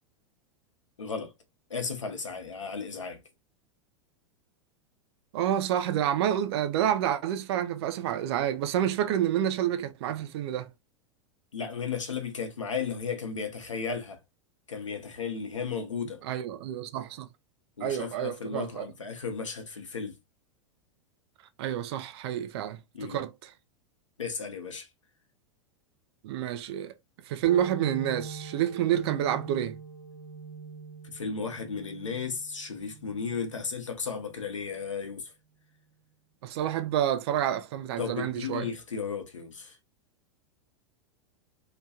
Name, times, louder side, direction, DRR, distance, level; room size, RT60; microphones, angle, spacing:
voice 1, 1.0-1.3 1.7-3.2 11.5-14.2 14.7-16.2 17.8-20.2 22.9-23.2 24.2-24.9 31.0-35.3 38.0-39.8, left 5 dB, 85° left, 0.8 m, -34 dB
voice 2, 5.3-10.7 16.2-17.3 17.8-18.9 21.6-23.5 26.2-26.9 27.3-29.8 36.4-38.7, right 10 dB, 55° right, 0.5 m, -29 dB
sound 1, 27.4-34.7, right 4 dB, 90° right, 1.1 m, -44 dB
2.9 x 2.2 x 2.8 m
hypercardioid pair, 95°, 16 cm